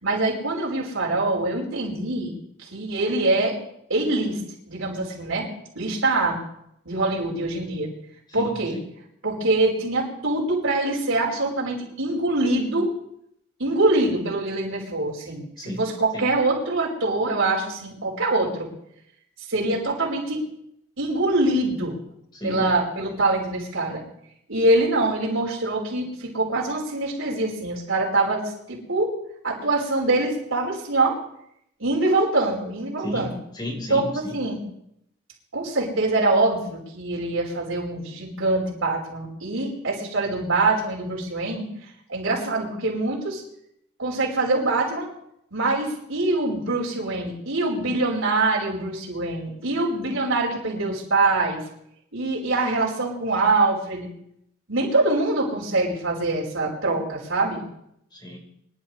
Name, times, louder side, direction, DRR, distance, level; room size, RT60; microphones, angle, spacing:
voice 1, 0.0-2.3 2.6-3.5 3.9-4.4 4.7-5.5 5.7-6.4 6.8-7.9 8.3-8.7 9.2-12.9 13.6-18.7 19.5-20.4 21.0-22.0 22.4-24.0 24.5-28.4 28.7-29.1 29.4-31.2 31.8-33.3 33.9-34.1 34.3-34.6 35.5-41.6 42.1-43.4 44.0-45.1 45.5-51.6 52.1-54.1 54.7-57.6, right 2 dB, 80° right, -3 dB, 5.1 m, -24 dB
voice 2, 8.3-8.8 15.6-15.8 16.1-16.2 22.3-22.7 33.0-34.4 58.1-58.4, equal, 20° left, -1 dB, 4.8 m, -33 dB
25.0 x 12.0 x 3.4 m, 0.74 s
head